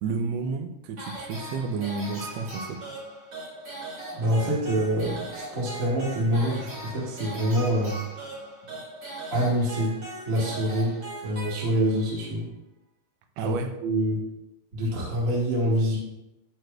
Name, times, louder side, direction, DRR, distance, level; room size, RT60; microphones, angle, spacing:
voice 1, 0.0-2.8 8.7-8.8 13.4-13.7, right 4 dB, 75° right, 6 dB, 1.6 m, -31 dB
sound 1, 1.0-12.1, right 2 dB, 55° right, 3.1 m, -39 dB
voice 2, 4.1-8.0 9.3-10.0 10.2-11.0 11.2-12.4 13.4-13.5 13.8-14.2 14.7-16.0, equal, 30° right, -7 dB, 1.8 m, -25 dB
12.0 x 4.6 x 2.3 m, 0.90 s
omnidirectional pair, 3.4 m